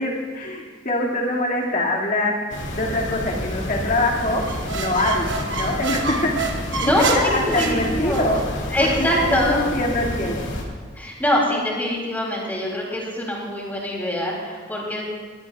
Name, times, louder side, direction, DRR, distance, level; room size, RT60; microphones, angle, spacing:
voice 1, 0.0-2.3 2.7-4.4 4.7-6.4 6.8-10.4, left 1 dB, 45° left, -2 dB, 2.3 m, -24 dB
sound 1, 2.5-10.6, left 1 dB, 70° left, 2.3 m, -30 dB
sound 2, 4.4-8.5, right 4 dB, 70° right, 1.0 m, -28 dB
voice 2, 6.8-8.3 8.7-9.6 10.9-15.0, equal, 10° left, -3 dB, 3.1 m, -23 dB
20.5 x 17.0 x 2.4 m, 1.5 s
head